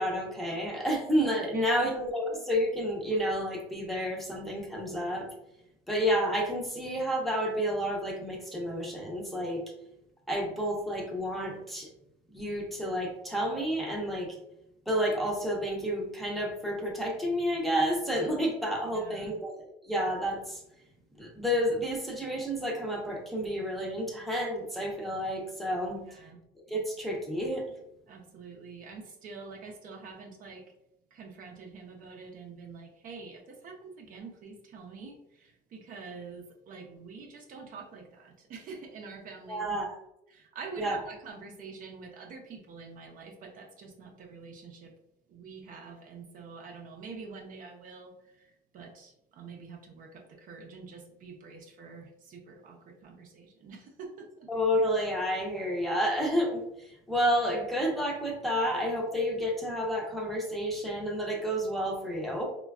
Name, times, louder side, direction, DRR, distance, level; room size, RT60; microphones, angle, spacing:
voice 1, 0.0-5.3 5.9-9.6 10.3-11.9 12.3-14.4 14.9-20.6 21.2-26.0 26.7-27.6 39.5-40.0 40.8-41.0 54.5-62.4, equal, ahead, -2 dB, 0.6 m, -30 dB
voice 2, 1.5-1.9 18.9-19.3 26.1-26.4 28.1-30.7 31.1-39.7 40.3-44.9 45.3-54.5, right 4 dB, 50° right, 2 dB, 0.5 m, -46 dB
3.1 x 2.2 x 2.3 m, 0.83 s
supercardioid pair, 100°, 18 cm